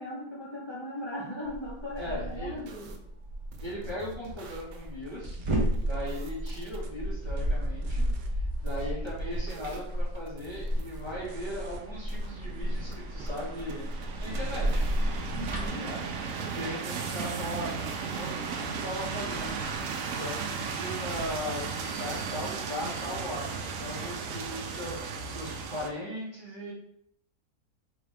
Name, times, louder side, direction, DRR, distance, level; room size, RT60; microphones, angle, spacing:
voice 1, 0.0-2.9 15.3-15.9, left 1 dB, 25° left, -7 dB, 0.7 m, -38 dB
sound 1, 1.4-15.7, equal, 45° right, 0.3 m, -32 dB
voice 2, 1.9-2.6 3.6-5.4 5.8-8.1 8.3-14.9 15.8-16.0 16.5-19.6 20.2-24.9 25.3-26.7, left 1 dB, 20° right, -8 dB, 1.0 m, -38 dB
sound 2, 2.0-3.0 3.5-6.9 7.4-8.3 8.7-9.9 10.1-11.8 12.1-12.9 13.3-16.7 17.2-20.6 21.1-21.6, right 2 dB, 85° right, 1.2 m, -46 dB
sound 3, 10.7-25.9, right 5 dB, 70° right, 0.8 m, -36 dB
4.2 x 2.8 x 3.3 m, 0.72 s
omnidirectional pair, 1.8 m